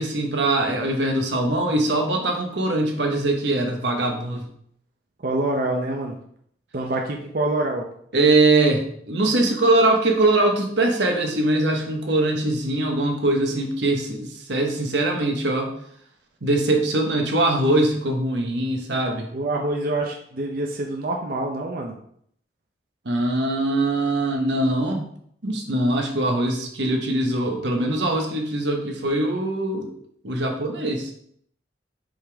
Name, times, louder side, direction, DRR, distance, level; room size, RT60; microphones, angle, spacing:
voice 1, 0.0-4.5 8.1-15.7 16.4-19.3 23.0-25.0 25.4-29.9 30.2-31.1, right 2 dB, 90° right, 2 dB, 1.2 m, -22 dB
voice 2, 5.2-6.2 6.7-7.8 19.3-21.9, right 2 dB, 55° right, 1 dB, 0.7 m, -26 dB
5.3 x 5.1 x 3.5 m, 0.66 s
head